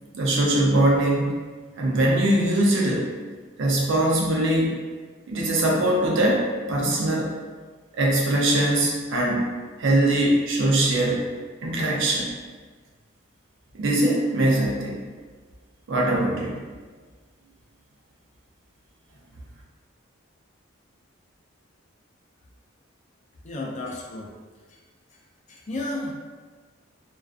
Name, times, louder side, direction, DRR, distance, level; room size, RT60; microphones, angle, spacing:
voice 1, 0.1-1.4 1.8-3.1 3.6-4.8 5.3-7.3 7.9-9.5 9.8-11.2 11.6-12.3 13.7-15.0 15.9-16.6, right 1 dB, 60° right, -2 dB, 0.5 m, -22 dB
voice 2, 23.4-24.3 25.5-26.1, left 2 dB, 35° left, -2 dB, 0.4 m, -32 dB
2.3 x 2.3 x 2.4 m, 1.4 s
head